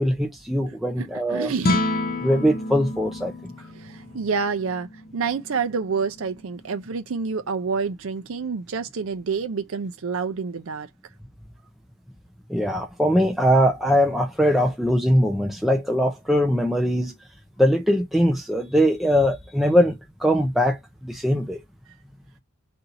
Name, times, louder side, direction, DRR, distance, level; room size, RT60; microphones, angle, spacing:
voice 1, 0.0-1.5 2.2-3.3 12.5-17.1 17.6-21.6, equal, ahead, 0.5 m, -21 dB
voice 2, 1.0-1.8 3.8-4.9 5.1-10.9, right 5 dB, 65° right, 0.5 m, -28 dB
sound 1, 1.5-7.9, left 1 dB, 40° left, 0.8 m, -31 dB
4.1 x 2.6 x 4.0 m
head